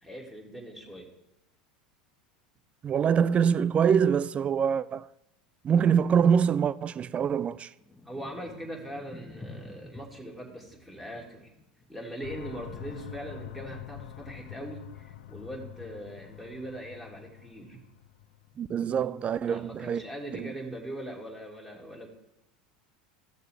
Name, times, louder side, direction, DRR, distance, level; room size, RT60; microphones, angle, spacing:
voice 1, 0.0-1.1 8.0-11.5 11.9-17.8 19.5-22.1, right 1 dB, ahead, 2.6 m, -41 dB
voice 2, 2.8-5.1 5.6-7.7 18.6-20.0 20.4-20.5, right 7 dB, 30° right, 0.4 m, -24 dB
Thunder / Rain, 7.5-16.7 17.0-17.8 18.4-18.8 19.0-19.8 20.4-20.5, left 2 dB, 15° left, 1.2 m, -52 dB
sound 1, 12.2-18.5, left 13 dB, 70° left, 0.5 m, -45 dB
15.0 x 6.6 x 3.3 m
hypercardioid pair, 90°, 4 cm